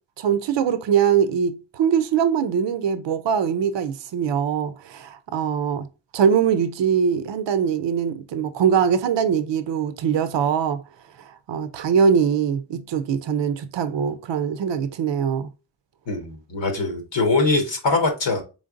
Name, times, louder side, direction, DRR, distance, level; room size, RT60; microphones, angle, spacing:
voice 1, 0.2-5.9 6.1-10.8 11.5-15.5, right 7 dB, 85° right, 0.5 m, -22 dB
voice 2, 16.1-18.4, left 3 dB, 85° left, 1.2 m, -22 dB
3.8 x 3.4 x 2.5 m
cardioid pair, 60°, 43 cm